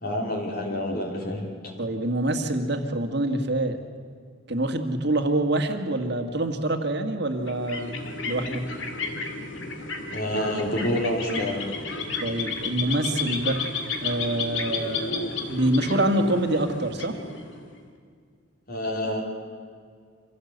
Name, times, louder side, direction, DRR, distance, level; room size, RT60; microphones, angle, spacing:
voice 1, 0.0-1.5 10.1-11.6 18.7-19.2, left 1 dB, 45° left, -1 dB, 3.7 m, -27 dB
voice 2, 1.8-3.8 4.5-8.0 8.3-8.6 12.2-13.6 14.0-17.2, right 1 dB, 55° right, 5 dB, 1.9 m, -26 dB
sound 1, 7.4-17.8, left 4 dB, 65° left, 2.6 m, -32 dB
26.0 x 16.5 x 8.1 m, 2.1 s
head